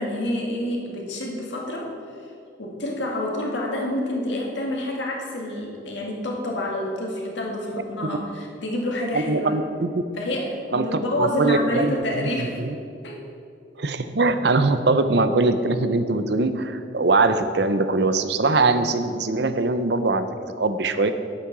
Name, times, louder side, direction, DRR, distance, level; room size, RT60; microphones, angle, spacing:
voice 1, 0.0-1.9 2.6-9.6 10.2-12.6 13.0-13.2, left 1 dB, 70° left, -1 dB, 2.1 m, -28 dB
voice 2, 9.1-10.0 10.7-12.3 12.6-12.8 13.8-20.3 20.6-21.1, right 3 dB, 60° right, 10 dB, 0.7 m, -22 dB
10.0 x 8.7 x 6.0 m, 2.4 s
head